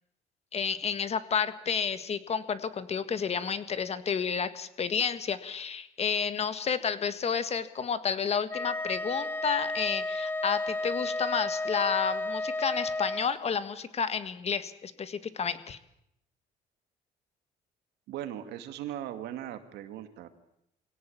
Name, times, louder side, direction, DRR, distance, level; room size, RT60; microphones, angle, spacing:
voice 1, 0.5-15.8, left 6 dB, 40° left, 12 dB, 1.7 m, -31 dB
Wind instrument woodwind instrument, 8.5-13.3, left 2 dB, 10° left, 0.8 m, -32 dB
voice 2, 18.1-20.3, right 11 dB, 85° right, 9 dB, 2.3 m, -38 dB
23.5 x 17.5 x 8.7 m, 0.78 s
cardioid pair, 110°, 17 cm